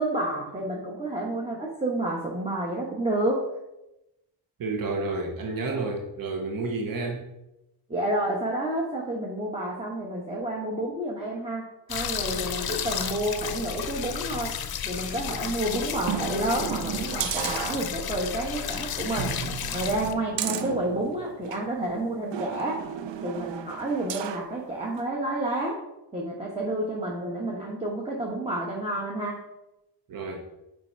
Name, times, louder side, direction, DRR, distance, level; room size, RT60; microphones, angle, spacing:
voice 1, 0.0-3.5 7.9-14.6 14.8-19.4 19.7-22.8 23.2-25.8 26.1-29.4, right 1 dB, 15° right, -2 dB, 1.1 m, -30 dB
voice 2, 4.6-7.3 30.1-30.4, right 3 dB, 50° right, 2 dB, 1.0 m, -30 dB
sound 1, 11.9-20.1, left 8 dB, 55° left, 0.6 m, -33 dB
sound 2, 16.0-18.3 18.7-18.8 19.2-21.7 22.3-24.5 25.0-25.1, right 9 dB, 75° right, 0.6 m, -34 dB
6.8 x 5.0 x 4.5 m, 0.93 s
wide cardioid pair, 125°, 44 cm